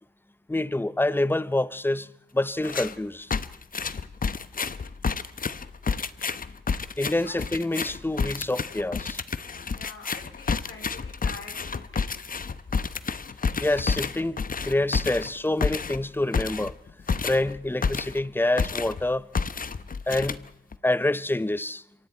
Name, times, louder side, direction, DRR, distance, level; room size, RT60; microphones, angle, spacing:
voice 1, 0.5-2.1 2.3-3.3 7.0-9.2 13.6-14.4 14.6-16.7 17.2-19.3 20.1-20.4 20.8-21.8, left 2 dB, 10° left, 0.7 m, -26 dB
sound 1, 2.6-3.0 3.3-18.3 18.6-19.0 19.3-20.8, left 5 dB, 45° left, 0.9 m, -30 dB
voice 2, 9.7-12.3, left 4 dB, 75° left, 4.3 m, -45 dB
27.5 x 24.0 x 4.4 m
cardioid pair, 65°, 20 cm